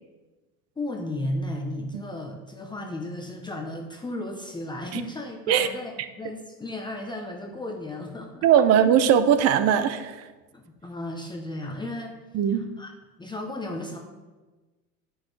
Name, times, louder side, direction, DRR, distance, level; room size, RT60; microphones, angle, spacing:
voice 1, 0.8-8.4 10.5-12.2 12.5-12.9 13.2-14.0, left 1 dB, 10° left, 1 dB, 0.8 m, -34 dB
voice 2, 8.4-10.2 12.3-12.6, right 9 dB, 35° right, 12 dB, 0.5 m, -20 dB
9.5 x 6.2 x 3.3 m, 1.2 s
hypercardioid pair, 105°, 47 cm